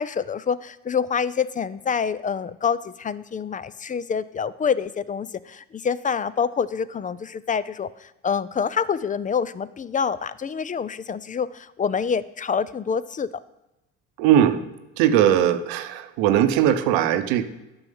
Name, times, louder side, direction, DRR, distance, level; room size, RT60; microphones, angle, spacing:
voice 1, 0.0-13.3, left 6 dB, 25° left, 17 dB, 0.4 m, -26 dB
voice 2, 14.2-14.6 15.0-17.4, right 10 dB, 75° right, 9 dB, 0.9 m, -19 dB
9.6 x 6.2 x 5.5 m, 0.98 s
hypercardioid pair, 65°, 35 cm